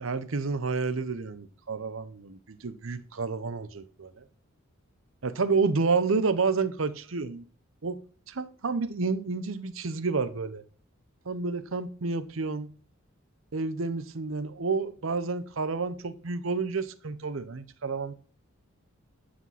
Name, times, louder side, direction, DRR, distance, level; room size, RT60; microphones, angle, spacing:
voice 1, 0.0-4.2 5.2-7.4 7.8-8.0 8.3-10.6 11.3-12.7 13.5-18.1, right 4 dB, 70° right, 0.8 m, -30 dB
11.5 x 5.1 x 5.7 m
head